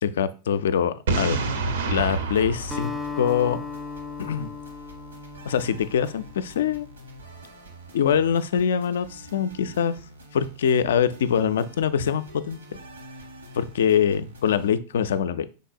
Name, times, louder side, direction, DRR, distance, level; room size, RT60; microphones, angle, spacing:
voice 1, 0.0-1.4 1.9-3.6 4.2-4.5 5.5-6.9 7.9-9.9 10.3-12.6 13.5-15.5, left 8 dB, 60° left, 13 dB, 0.3 m, -24 dB
Boom, 1.1-3.9, right 3 dB, 60° right, 0.6 m, -28 dB
sound 1, 2.0-14.7, right 1 dB, 75° right, 1.0 m, -47 dB
Acoustic guitar, 2.7-7.2, left 5 dB, 5° right, 0.4 m, -37 dB
5.3 x 3.8 x 2.5 m, 0.36 s
figure-of-eight pair, 90°, 0 cm